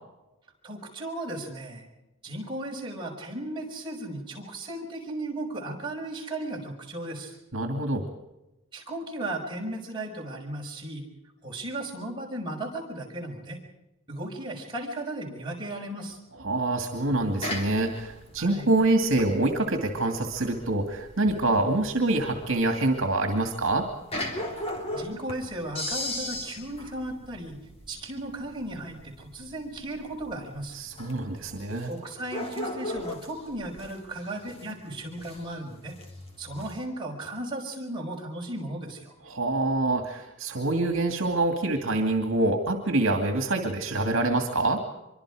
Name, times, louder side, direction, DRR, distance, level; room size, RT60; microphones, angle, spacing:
voice 1, 0.6-1.9 2.2-7.4 8.7-11.1 11.4-13.6 14.1-16.2 18.4-18.7 24.9-27.6 27.9-30.8 31.8-36.0 36.4-39.1, right 1 dB, 20° right, -2 dB, 5.7 m, -36 dB
voice 2, 7.5-8.1 16.4-23.9 30.7-31.9 39.3-44.8, right 2 dB, 60° right, 4 dB, 2.5 m, -26 dB
sound 1, 17.1-36.8, left 1 dB, 30° left, 3.4 m, -38 dB
25.5 x 24.0 x 5.0 m, 0.96 s
head